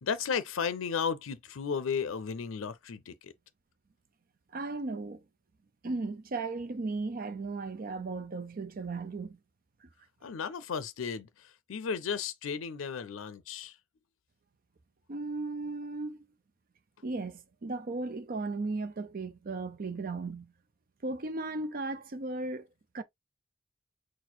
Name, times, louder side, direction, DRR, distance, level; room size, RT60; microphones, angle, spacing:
voice 1, 0.0-3.3 10.2-11.3 11.7-13.7, left 6 dB, 90° left, 0.5 m, -34 dB
voice 2, 4.5-5.2 5.8-9.4 15.1-16.2 17.0-20.5 21.0-22.7 22.9-23.0, right 3 dB, 45° right, 0.5 m, -36 dB
4.2 x 2.1 x 4.3 m
head